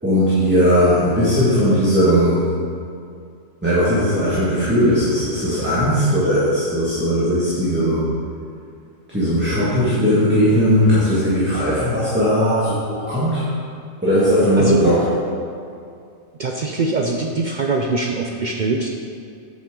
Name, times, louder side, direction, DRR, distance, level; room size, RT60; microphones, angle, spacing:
voice 1, 0.0-2.5 3.6-8.0 9.1-13.5 14.0-15.1, equal, 10° right, -11 dB, 1.8 m, -18 dB
voice 2, 16.4-18.9, right 3 dB, 75° right, 1 dB, 0.4 m, -22 dB
9.1 x 7.3 x 3.8 m, 2.3 s
omnidirectional pair, 1.5 m